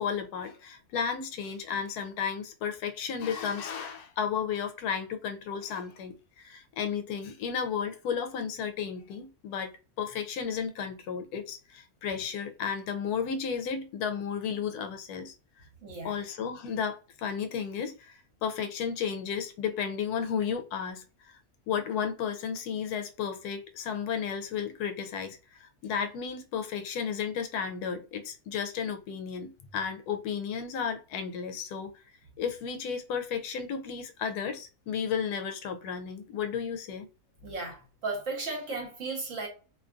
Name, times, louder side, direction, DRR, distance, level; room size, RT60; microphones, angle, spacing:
voice 1, 0.0-9.7 10.0-15.3 16.0-21.4 21.7-31.9 32.4-37.1, left 7 dB, 80° left, 1.1 m, -33 dB
voice 2, 15.8-16.1 37.4-39.5, right 3 dB, 60° right, 1.2 m, -35 dB
2.8 x 2.3 x 2.5 m
omnidirectional pair, 1.6 m